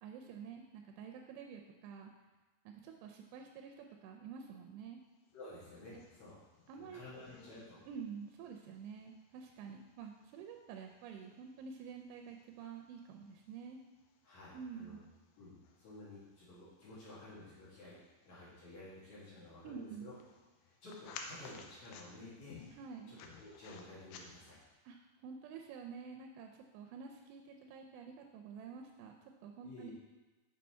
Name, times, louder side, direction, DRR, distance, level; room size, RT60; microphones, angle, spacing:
voice 1, 0.0-2.1 2.7-5.0 6.7-7.0 7.9-13.8 14.5-15.0 19.6-20.1 22.7-23.1 24.9-25.0 25.2-29.2 29.4-29.9, right 6 dB, 85° right, 3 dB, 2.7 m, -49 dB
sound 1, 5.3-24.7, left 5 dB, 80° left, 2.5 m, -58 dB
voice 2, 5.3-6.4 6.7-7.8 14.2-15.0 15.4-20.1 20.6-22.6 23.1-24.6 29.6-29.9, left 2 dB, 50° left, -9 dB, 2.7 m, -52 dB
6.5 x 5.7 x 4.3 m, 1.2 s
omnidirectional pair, 4.9 m